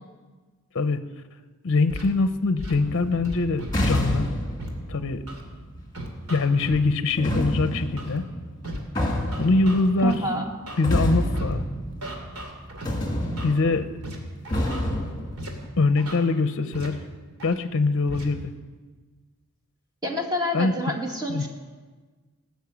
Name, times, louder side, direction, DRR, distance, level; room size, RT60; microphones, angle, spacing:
voice 1, 1.6-4.3 4.9-5.2 6.3-8.2 9.4-10.2 10.8-11.6 13.4-13.9 15.8-17.0 17.4-18.4 20.5-20.8 21.3-21.5, left 3 dB, 60° left, 11 dB, 0.6 m, -23 dB
Scratching (performance technique), 1.9-2.1 2.6-2.7 3.2-4.1 4.6-4.7 5.3-5.4 5.9-6.8 7.3-7.4 8.0-8.2 8.6-8.8 9.3-10.2 10.7-10.8 11.3-11.5 12.0-12.9 13.4-13.5 14.0-14.2 14.4-14.8 15.4-15.5 16.0-16.2 16.7-16.9 17.4-17.5 18.1-18.2, right 1 dB, 80° right, 2.5 m, -36 dB
sound 1, 2.8-6.2 7.2-12.6 12.9-15.7, equal, 20° left, 2.1 m, -29 dB
voice 2, 10.0-10.5 20.0-21.5, left 1 dB, 20° right, 1 dB, 2.0 m, -28 dB
18.5 x 6.4 x 8.2 m, 1.4 s
head